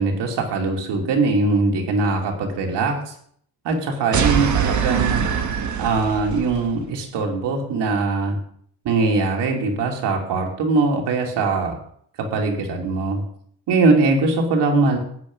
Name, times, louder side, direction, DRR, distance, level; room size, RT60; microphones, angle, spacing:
voice 1, 0.0-3.1 3.6-5.2 5.8-8.4 8.8-11.8 12.3-13.2 13.7-15.0, right 3 dB, 90° right, 1 dB, 3.3 m, -21 dB
sound 1, 4.1-6.7, right 7 dB, 45° right, 1.5 m, -23 dB
13.5 x 5.6 x 9.5 m, 0.63 s
cardioid pair, 145°, 40 cm